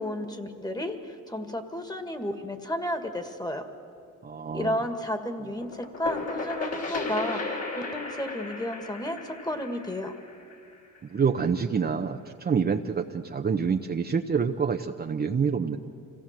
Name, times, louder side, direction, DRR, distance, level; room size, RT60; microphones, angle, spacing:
voice 1, 0.0-3.6 4.5-10.1, left 1 dB, 15° left, 7 dB, 1.9 m, -32 dB
voice 2, 4.2-4.8 11.0-15.8, right 6 dB, 30° right, 5 dB, 0.8 m, -27 dB
sound 1, 5.6-11.2, left 3 dB, 55° left, 3.3 m, -35 dB
25.5 x 17.0 x 7.5 m, 2.4 s
cardioid pair, 90°, 30 cm